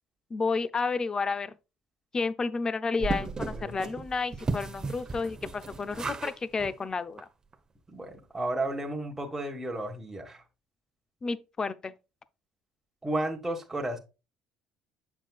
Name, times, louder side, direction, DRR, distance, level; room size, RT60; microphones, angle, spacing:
voice 1, 0.3-1.5 2.1-7.3 11.2-11.9, left 4 dB, 30° left, 0.6 m, -31 dB
voice 2, 3.0-3.8 7.9-10.4 13.0-14.0, right 1 dB, 15° right, 1.7 m, -33 dB
sound 1, 3.0-6.3 6.6-6.7 7.2-7.3 7.5-7.6, right 3 dB, 30° right, 1.0 m, -35 dB
7.3 x 6.2 x 2.4 m
hypercardioid pair, 65°, 2 cm